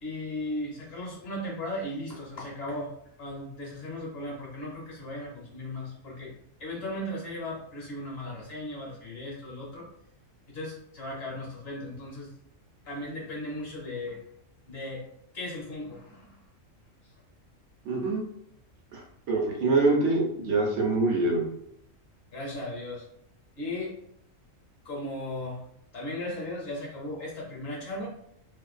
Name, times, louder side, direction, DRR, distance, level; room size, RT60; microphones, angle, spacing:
voice 1, 0.0-2.9 3.2-6.3 6.6-9.9 10.5-12.3 12.9-14.2 14.7-15.0 15.3-16.3 22.3-23.0 23.6-23.9 24.8-25.6 25.9-28.1, left 1 dB, 55° left, -3 dB, 0.9 m, -36 dB
voice 2, 17.8-18.2 18.9-21.5, right 3 dB, 70° right, -1 dB, 0.8 m, -25 dB
2.5 x 2.2 x 2.3 m, 0.73 s
omnidirectional pair, 1.4 m